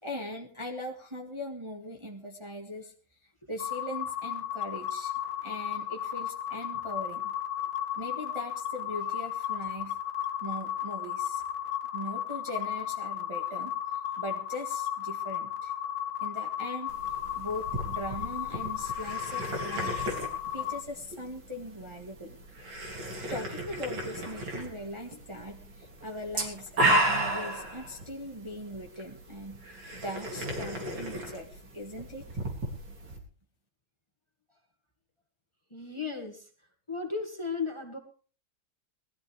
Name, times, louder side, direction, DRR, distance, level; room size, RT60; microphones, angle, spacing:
voice 1, 0.0-2.9 3.5-5.1 5.4-7.3 7.9-10.0 10.4-11.4 11.9-13.7 14.2-15.7 16.2-16.9 17.3-20.0 20.5-22.4 23.3-29.6 29.9-32.2, left 1 dB, 15° right, 1 dB, 1.8 m, -40 dB
sound 1, 3.6-20.8, left 10 dB, 70° left, 1.8 m, -34 dB
sound 2, 16.9-33.2, right 1 dB, 70° right, 3.9 m, -34 dB
voice 2, 35.7-36.5 36.9-38.0, left 5 dB, 15° left, 4 dB, 1.9 m, -35 dB
20.0 x 13.5 x 3.5 m, 0.39 s
omnidirectional pair, 2.2 m